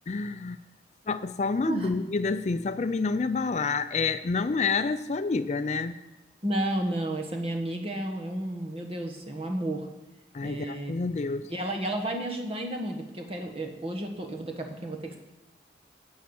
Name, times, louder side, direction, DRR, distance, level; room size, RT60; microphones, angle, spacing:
voice 1, 0.1-0.6 1.1-6.0 10.3-11.4, left 4 dB, 40° left, 11 dB, 0.4 m, -28 dB
voice 2, 1.7-2.1 6.4-9.9 10.4-11.1 11.5-15.2, right 1 dB, 30° right, 2 dB, 1.4 m, -32 dB
10.5 x 8.6 x 7.1 m, 0.99 s
head